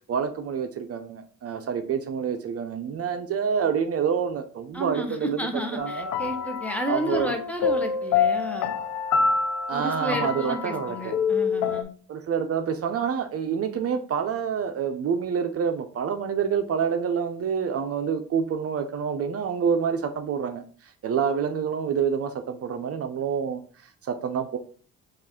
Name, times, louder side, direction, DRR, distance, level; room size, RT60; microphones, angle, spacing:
voice 1, 0.1-5.5 5.7-6.1 6.9-7.4 9.7-11.2 12.1-20.6 21.0-23.6 24.0-24.6, right 7 dB, 50° right, 7 dB, 0.5 m, -27 dB
voice 2, 4.7-8.7 9.7-11.9, equal, 5° left, 4 dB, 0.8 m, -32 dB
sound 1, 5.8-11.8, left 5 dB, 80° left, 0.5 m, -26 dB
4.9 x 2.4 x 3.6 m, 0.41 s
cardioid pair, 90°, 30 cm